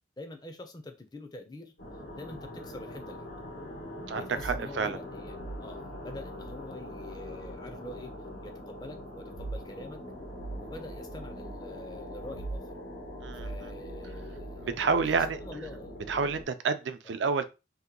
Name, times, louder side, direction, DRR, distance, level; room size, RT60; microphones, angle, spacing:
voice 1, 0.2-1.7 2.2-3.3 4.1-8.1 8.4-10.0 10.5-12.7 13.3-14.9 15.2-15.9 17.0-17.1, left 2 dB, 20° left, 0.4 m, -45 dB
sound 1, 1.8-16.4, equal, 90° left, 1.2 m, -41 dB
voice 2, 4.1-5.0 13.2-13.5 14.6-15.4 16.1-17.4, right 5 dB, 75° right, 0.4 m, -29 dB
2.8 x 2.2 x 3.6 m
head